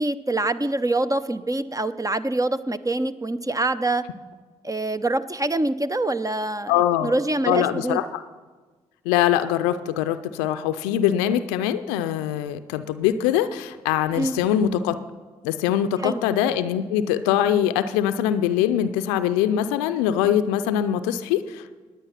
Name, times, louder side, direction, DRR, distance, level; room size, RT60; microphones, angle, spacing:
voice 1, 0.0-4.0 4.6-8.0 14.2-14.4 16.0-16.2, right 2 dB, 20° right, 13 dB, 0.7 m, -25 dB
voice 2, 6.7-7.1 7.5-8.2 9.1-15.0 15.4-21.8, left 10 dB, 90° left, 11 dB, 0.5 m, -23 dB
19.0 x 9.0 x 5.8 m, 1.3 s
hypercardioid pair, 40°, 16 cm